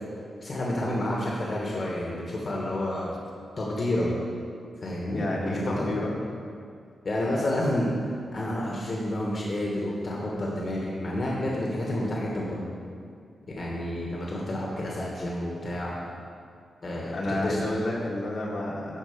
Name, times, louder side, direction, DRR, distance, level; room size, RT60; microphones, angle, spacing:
voice 1, 0.4-3.1 3.6-4.1 4.8-6.0 7.0-7.9 8.3-12.6 13.6-16.2 16.8-17.6, left 1 dB, 45° left, -4 dB, 1.5 m, -30 dB
voice 2, 5.1-6.2 16.8-19.0, left 1 dB, 60° left, -4 dB, 1.7 m, -30 dB
11.5 x 4.4 x 6.8 m, 2.3 s
wide cardioid pair, 135°, 0 cm